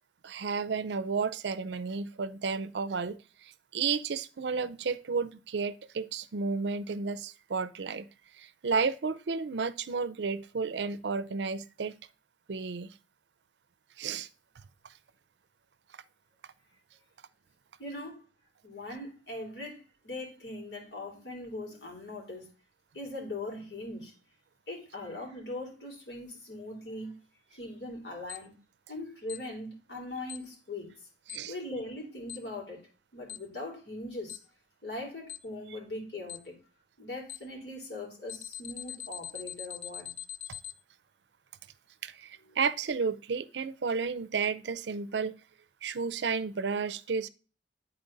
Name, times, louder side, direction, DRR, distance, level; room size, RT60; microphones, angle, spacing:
voice 1, 0.2-8.1 8.4-11.9 12.5-12.9 14.0-14.3 31.3-31.5 42.0-45.3 45.8-47.3, right 5 dB, 70° right, 0.5 m, -32 dB
voice 2, 17.8-18.2 18.6-22.5 22.9-24.1 24.7-27.1 27.5-28.5 28.9-30.9 31.5-32.8 33.1-34.4 34.8-36.5 37.0-40.1 42.5-42.6, left 2 dB, 70° left, 3.4 m, -40 dB
Alarm, 28.3-28.4 29.3-29.4 30.3-30.4 31.3-31.4 32.3-32.4 33.3-33.4 34.3-34.4 35.3-35.4 36.3-36.4 37.3-37.4 38.3-40.7, left 11 dB, 45° left, 0.4 m, -40 dB
9.5 x 4.3 x 3.9 m
head